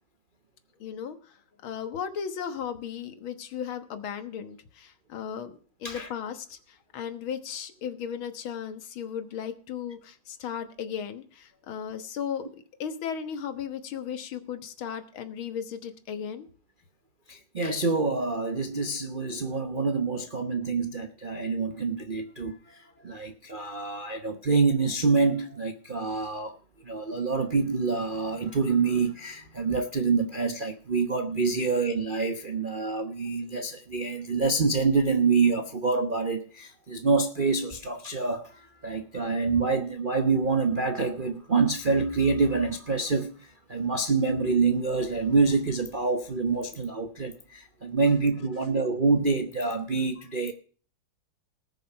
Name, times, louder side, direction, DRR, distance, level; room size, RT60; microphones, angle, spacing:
voice 1, 0.8-12.5 12.8-16.5, left 8 dB, 70° left, 2.1 m, -36 dB
voice 2, 17.3-26.5 26.8-43.3 43.7-50.5, right 4 dB, 45° right, 0.7 m, -26 dB
19.5 x 6.6 x 5.7 m
omnidirectional pair, 2.4 m